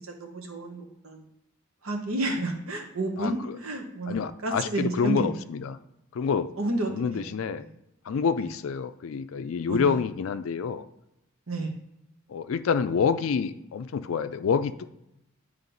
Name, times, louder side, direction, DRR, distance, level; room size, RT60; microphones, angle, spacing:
voice 1, 0.2-1.2 1.8-5.5 6.6-7.3 7.6-7.7 9.7-10.0 11.5-11.7, right 2 dB, 80° right, 3 dB, 1.1 m, -31 dB
voice 2, 3.2-3.6 4.1-5.8 6.1-6.5 6.9-7.6 8.1-10.8 12.3-14.9, left 6 dB, 70° left, 11 dB, 0.4 m, -27 dB
9.0 x 3.1 x 3.9 m, 0.83 s
head